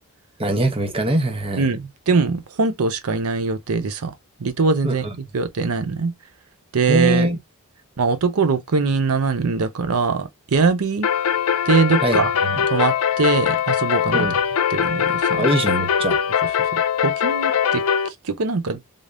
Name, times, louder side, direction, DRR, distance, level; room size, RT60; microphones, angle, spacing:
voice 1, 0.4-1.7 4.8-4.9 6.9-7.4 12.0-12.6 14.1-14.3 15.4-16.2, right 1 dB, 25° right, 0.9 m, -22 dB
voice 2, 1.6-4.1 4.4-5.1 5.3-6.1 6.7-7.3 8.0-11.1 11.7-12.3 12.7-14.3 14.7-15.5 16.6-18.8, right 4 dB, 70° right, 0.6 m, -22 dB
sound 1, 11.0-18.1, left 8 dB, 70° left, 0.5 m, -21 dB
3.8 x 3.4 x 2.5 m
head